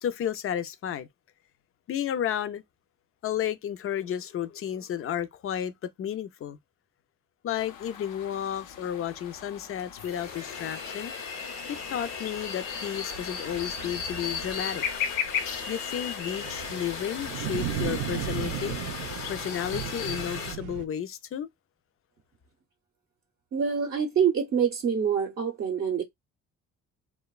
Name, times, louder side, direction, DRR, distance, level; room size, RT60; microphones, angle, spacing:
voice 1, 0.0-1.1 1.9-2.6 3.2-5.7 6.0-6.6 7.4-11.1 11.7-14.8 15.7-18.8 19.3-21.5, left 10 dB, 45° left, 0.5 m, -32 dB
sound 1, 7.6-20.2, left 8 dB, 90° left, 0.6 m, -38 dB
sound 2, 9.3-9.4 9.8-20.6, left 5 dB, 65° left, 1.0 m, -37 dB
sound 3, 11.7-20.8, right 12 dB, 90° right, 0.5 m, -36 dB
voice 2, 23.5-26.0, right 7 dB, 45° right, 0.7 m, -26 dB
2.9 x 2.2 x 2.2 m
cardioid pair, 90°, 30 cm